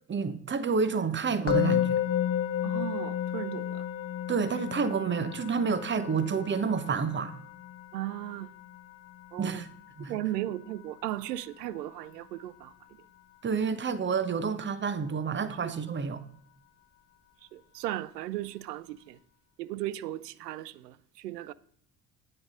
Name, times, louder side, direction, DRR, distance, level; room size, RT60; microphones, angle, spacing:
voice 1, 0.1-2.0 4.3-7.4 9.4-9.7 10.0-10.2 13.4-16.2, right 5 dB, 25° right, 1.0 m, -29 dB
Musical instrument, 1.5-12.6, left 10 dB, 30° left, 0.7 m, -33 dB
voice 2, 2.6-3.8 7.9-8.5 9.3-9.6 10.1-12.7 17.5-19.2 19.6-21.5, right 14 dB, 80° right, 0.5 m, -36 dB
9.7 x 8.7 x 3.8 m
figure-of-eight pair, 50°, 49 cm